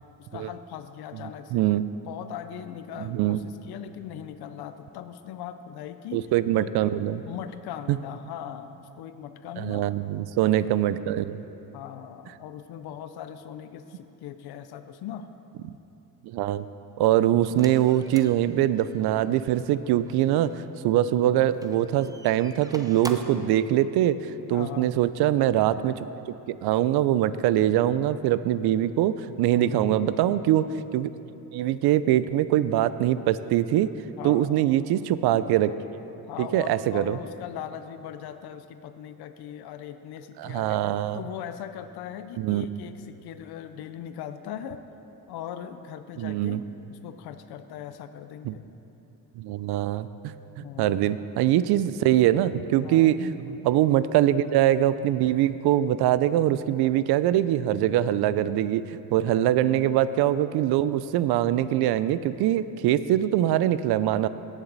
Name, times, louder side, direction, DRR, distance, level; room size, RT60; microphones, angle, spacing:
voice 1, 0.2-1.6 2.1-6.2 6.5-6.7 7.2-9.9 11.7-15.3 24.5-24.9 29.5-29.8 34.2-34.7 36.3-40.8 41.1-44.8 45.3-46.6 46.9-48.6 50.6-51.3 52.8-53.2 59.2-59.5, left 9 dB, 75° left, 10 dB, 0.6 m, -39 dB
voice 2, 1.5-1.9 3.0-3.4 6.1-7.2 7.9-8.0 9.6-11.4 16.2-16.7 17.0-26.1 26.5-31.1 31.5-33.9 34.2-35.7 36.4-37.2 40.4-41.2 42.4-42.8 46.2-46.6 48.5-48.6 49.4-64.3, right 12 dB, 80° right, 15 dB, 0.5 m, -23 dB
sound 1, 17.5-20.5 21.5-23.5, right 2 dB, 10° right, 0.5 m, -44 dB
17.0 x 7.3 x 4.0 m, 3.0 s
cardioid pair, 95°, 38 cm